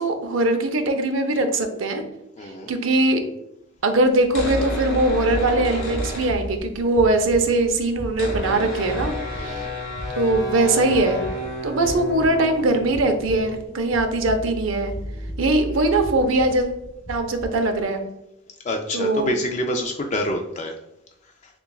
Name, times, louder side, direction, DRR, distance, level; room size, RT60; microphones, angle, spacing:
voice 1, 0.0-2.0 2.7-3.2 3.8-9.7 10.1-11.3 11.6-14.9 15.4-16.7 17.1-18.0 18.9-19.3, right 2 dB, 75° right, 6 dB, 0.6 m, -21 dB
voice 2, 2.4-2.7 9.4-9.7 15.7-15.9 18.6-20.8, left 1 dB, 35° left, 3 dB, 0.3 m, -27 dB
sound 1, 4.2-6.9 7.2-7.3 7.5-16.9, equal, 75° left, 1.5 m, -31 dB
sound 2, 5.3-17.8, equal, 55° left, 1.1 m, -38 dB
6.7 x 2.3 x 2.3 m, 0.86 s
head